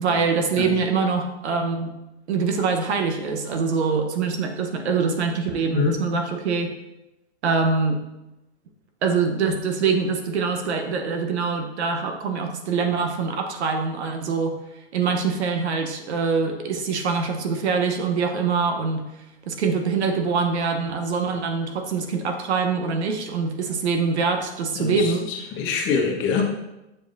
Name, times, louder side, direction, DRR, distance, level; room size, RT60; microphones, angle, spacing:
voice 1, 0.0-1.9 2.3-6.7 7.4-8.0 9.0-14.5 14.9-19.0 19.5-25.3, right 5 dB, 75° right, 4 dB, 0.9 m, -24 dB
voice 2, 24.8-26.4, left 6 dB, 35° left, 1 dB, 1.2 m, -25 dB
7.3 x 4.9 x 2.6 m, 0.96 s
hypercardioid pair, 120°, 34 cm